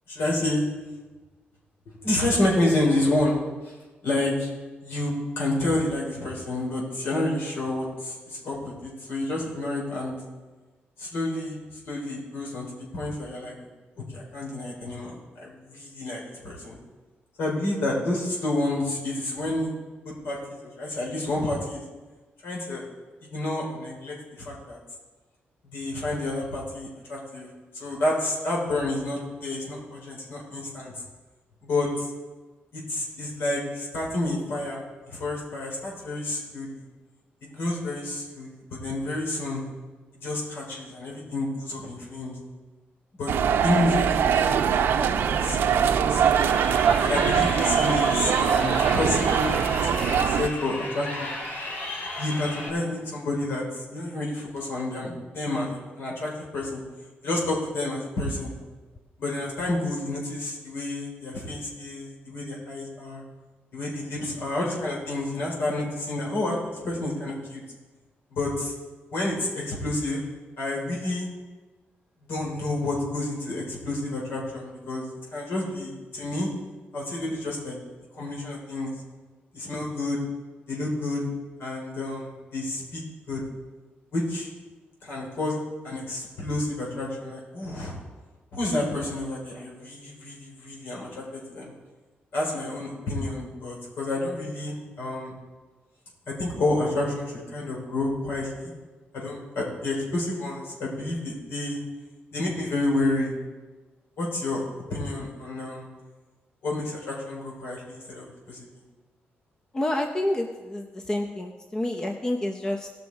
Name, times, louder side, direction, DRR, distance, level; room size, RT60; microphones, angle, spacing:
voice 1, 0.1-0.6 2.0-3.4 3.6-3.7 4.0-4.5 4.8-10.2 11.0-11.6 11.8-12.7 12.9-13.7 14.0-16.8 17.4-19.7 20.0-20.4 20.8-21.8 22.4-22.9 23.2-24.8 25.7-27.5 27.8-30.9 31.6-32.1 32.7-34.8 35.1-36.8 37.4-39.6 40.2-42.4 43.1-46.4 47.0-49.5 49.8-51.3 52.2-56.8 57.2-58.5 59.2-63.2 63.7-67.6 68.3-68.7 69.1-70.2 70.6-71.3 72.3-75.1 75.3-76.5 76.9-77.8 78.1-78.9 79.5-80.2 80.7-81.2 81.6-83.0 83.3-83.4 84.1-84.5 85.0-85.6 85.8-88.0 88.5-91.7 92.3-95.3 96.3-98.7 99.1-101.8 102.3-103.3 104.2-104.6 104.9-105.9 106.6-108.7, left 2 dB, 70° left, -3 dB, 4.1 m, -29 dB
sound 1, 43.3-50.5, right 8 dB, 70° right, 0.6 m, -22 dB
Crowd, 46.2-52.7, left 2 dB, 55° left, 2.5 m, -34 dB
voice 2, 109.7-112.9, left 1 dB, 20° left, 3 dB, 0.6 m, -28 dB
18.5 x 6.2 x 4.7 m, 1.3 s
wide cardioid pair, 160°, 4 cm